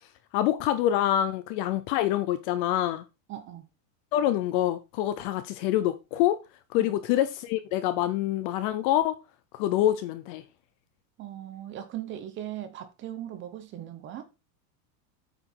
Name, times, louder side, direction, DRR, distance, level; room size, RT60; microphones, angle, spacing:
voice 1, 0.3-3.0 4.1-6.4 6.7-9.2 9.5-10.4, left 12 dB, 35° left, 0.6 m, -26 dB
voice 2, 3.3-3.7 6.8-6.9 11.2-14.2, right 12 dB, 25° right, 1.1 m, -39 dB
9.0 x 6.1 x 4.6 m
supercardioid pair, 175°, 49 cm